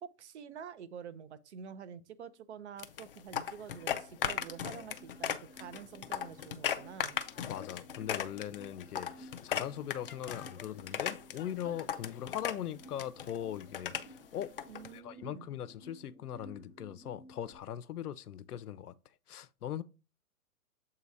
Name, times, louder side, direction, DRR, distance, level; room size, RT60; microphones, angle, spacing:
voice 1, 0.0-7.2 14.7-15.5, right 7 dB, 50° right, 0.6 m, -48 dB
cups feat Lopez, 2.8-14.9, left 9 dB, 40° left, 0.4 m, -38 dB
sound 1, 3.8-17.6, right 1 dB, ahead, 1.6 m, -56 dB
voice 2, 7.5-13.9 14.3-14.5 14.9-18.9 19.3-19.8, left 10 dB, 85° left, 0.6 m, -40 dB
7.4 x 2.8 x 4.6 m
hypercardioid pair, 150°, 45 cm